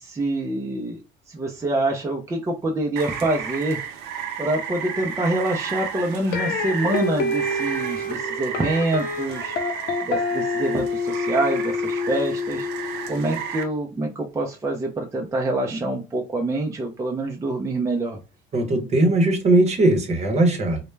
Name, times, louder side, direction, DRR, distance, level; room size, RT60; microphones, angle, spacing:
voice 1, 0.0-1.0 1.3-3.8 4.4-9.6 10.0-12.7 13.1-18.2, right 2 dB, 20° right, 1 dB, 0.4 m, -26 dB
Rain, 3.0-13.6, right 7 dB, 85° right, 0.5 m, -33 dB
sound 1, 6.3-13.4, left 3 dB, 70° left, 0.5 m, -27 dB
voice 2, 18.5-20.8, right 2 dB, 40° right, 5 dB, 0.7 m, -19 dB
2.1 x 2.1 x 3.1 m, 0.29 s
cardioid pair, 110°, 17 cm